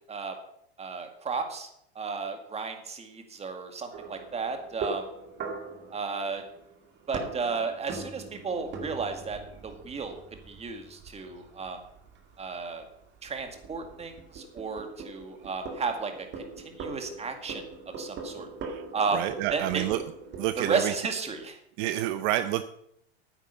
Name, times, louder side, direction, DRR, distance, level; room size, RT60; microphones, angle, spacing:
voice 1, 0.8-1.7 2.0-5.1 5.9-6.4 7.1-10.2 10.5-11.8 12.4-12.8 13.2-17.6 18.0-18.5 18.9-19.2 19.5-19.9 20.6-21.6, right 4 dB, 20° right, 6 dB, 2.1 m, -33 dB
sound 1, 3.9-21.4, right 4 dB, 35° right, 2.1 m, -42 dB
voice 2, 19.1-20.0 20.4-20.9 21.8-22.6, right 14 dB, 55° right, 12 dB, 0.7 m, -28 dB
9.6 x 8.9 x 6.7 m, 0.74 s
hypercardioid pair, 110°, 31 cm